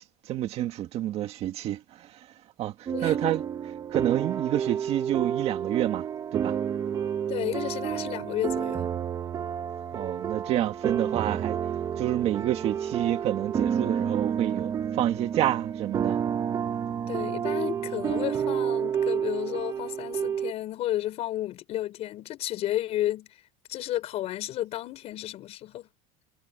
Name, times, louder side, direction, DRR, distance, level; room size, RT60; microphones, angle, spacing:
voice 1, 0.0-2.3 2.6-6.6 9.9-11.6 12.0-16.2, right 13 dB, 35° right, 1.7 m, -29 dB
voice 2, 2.9-3.4 7.3-8.9 17.1-23.3 23.7-25.9, left 14 dB, 35° left, 5.6 m, -32 dB
sound 1, 2.9-20.5, right 8 dB, 20° right, 0.7 m, -30 dB
supercardioid pair, 160°, 18 cm